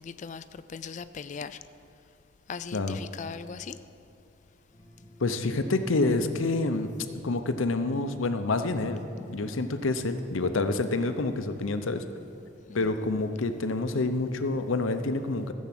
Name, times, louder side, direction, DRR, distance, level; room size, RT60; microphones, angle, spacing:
voice 1, 0.0-1.6 2.5-3.8 5.4-5.5 12.7-12.9, left 5 dB, 35° left, 13 dB, 0.3 m, -39 dB
sound 1, 4.7-10.2, equal, 20° left, 2.2 m, -49 dB
voice 2, 5.2-6.9 7.2-9.0 9.3-12.0 12.7-15.5, left 3 dB, 80° left, 9 dB, 0.7 m, -27 dB
14.0 x 7.3 x 5.9 m, 2.7 s
head